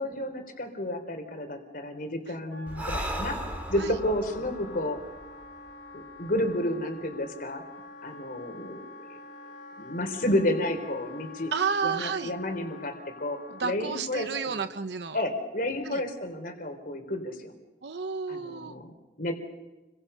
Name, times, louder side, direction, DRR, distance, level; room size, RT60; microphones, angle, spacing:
voice 1, 0.0-3.4 3.7-5.0 5.9-7.6 8.0-9.2 9.8-11.5 11.8-14.6 15.1-17.5 18.3-19.3, left 1 dB, 55° left, 5 dB, 3.6 m, -31 dB
Wind instrument woodwind instrument, 2.5-13.8, left 2 dB, 80° left, 3.5 m, -46 dB
Breathing, 2.7-6.2, right 1 dB, 10° right, 3.3 m, -37 dB
voice 2, 11.5-12.3 13.5-15.2 15.8-16.0 17.8-18.8, right 5 dB, 65° right, 10 dB, 0.9 m, -31 dB
30.0 x 24.0 x 5.6 m, 1.1 s
head